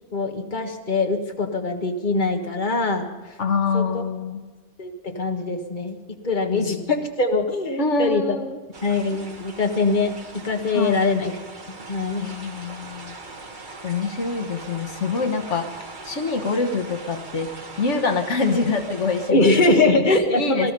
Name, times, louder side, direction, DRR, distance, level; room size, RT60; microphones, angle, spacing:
voice 1, 0.1-3.1 3.7-4.0 4.8-6.0 6.2-8.4 8.8-11.3 11.7-12.3 19.3-20.7, left 3 dB, 40° left, 3 dB, 1.7 m, -22 dB
voice 2, 3.4-4.4 6.5-6.9 7.8-8.6 10.7-11.0 12.2-13.1 13.8-15.7 16.0-17.5 17.8-19.8 20.1-20.7, left 4 dB, 80° left, 5 dB, 1.5 m, -25 dB
sound 1, 8.7-19.3, right 3 dB, 45° right, 1.5 m, -40 dB
20.0 x 13.5 x 5.3 m, 1.3 s
omnidirectional pair, 1.2 m